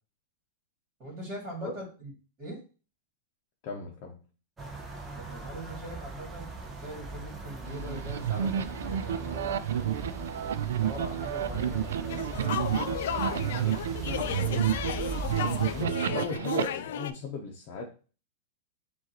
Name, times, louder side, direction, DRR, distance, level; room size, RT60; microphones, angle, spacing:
voice 1, 1.0-2.1 2.4-2.6 5.1-10.1 10.7-14.5, right 1 dB, 30° right, -4 dB, 2.1 m, -42 dB
voice 2, 3.6-4.2 15.7-17.8, left 4 dB, 40° left, -1 dB, 0.8 m, -36 dB
sound 1, 4.6-15.8, right 2 dB, 10° right, 0.7 m, -40 dB
sound 2, 7.6-16.6, right 10 dB, 90° right, 0.3 m, -30 dB
sound 3, 12.1-17.1, left 10 dB, 70° left, 0.4 m, -34 dB
6.3 x 2.6 x 2.9 m, 0.36 s
supercardioid pair, 155°, 0 cm